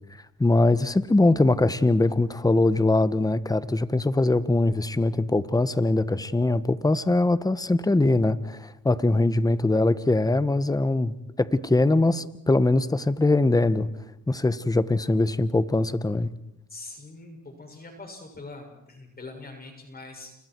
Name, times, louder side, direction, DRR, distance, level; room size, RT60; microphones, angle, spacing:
voice 1, 0.4-13.9 14.3-16.3, left 2 dB, 10° left, 14 dB, 1.3 m, -22 dB
voice 2, 16.7-20.4, left 3 dB, 30° left, 3 dB, 6.6 m, -43 dB
30.0 x 29.5 x 4.7 m, 0.85 s
cardioid pair, 90°, 30 cm